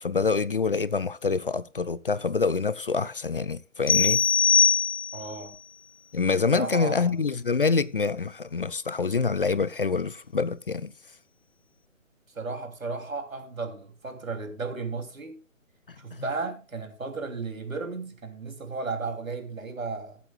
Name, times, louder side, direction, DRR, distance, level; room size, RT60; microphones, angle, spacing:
voice 1, 0.0-4.2 6.1-10.9 16.1-16.2, left 4 dB, 45° left, 0.5 m, -26 dB
sound 1, 3.9-5.4, left 6 dB, 60° left, 1.4 m, -21 dB
voice 2, 5.1-5.6 6.5-7.2 12.3-15.4 16.0-20.2, right 4 dB, 75° right, 3.3 m, -34 dB
22.5 x 8.2 x 2.4 m
figure-of-eight pair, 150°, 41 cm